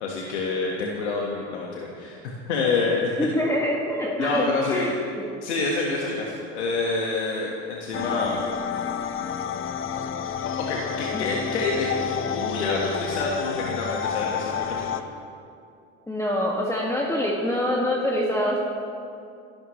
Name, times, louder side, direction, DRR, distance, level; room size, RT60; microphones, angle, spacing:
voice 1, 0.0-3.3 4.2-5.0 5.4-8.4 10.7-14.9, left 3 dB, 90° left, -2 dB, 1.7 m, -27 dB
voice 2, 3.2-4.9 11.1-11.3 16.1-18.6, left 1 dB, 10° left, -3 dB, 2.0 m, -25 dB
sound 1, 7.9-15.0, left 7 dB, 40° left, 1.0 m, -30 dB
26.0 x 12.0 x 3.2 m, 2.5 s
hypercardioid pair, 80°, 33 cm